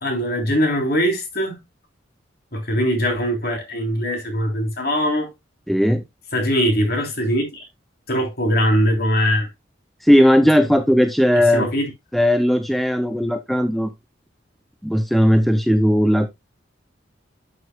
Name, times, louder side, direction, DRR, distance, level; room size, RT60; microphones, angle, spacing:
voice 1, 0.0-1.6 2.5-5.3 6.3-7.7 8.1-9.5 11.3-11.9, equal, 50° left, 3.4 m, -21 dB
voice 2, 5.7-6.0 10.0-11.7 12.1-13.9 14.8-16.3, equal, ahead, 0.5 m, -17 dB
11.5 x 6.3 x 2.3 m
head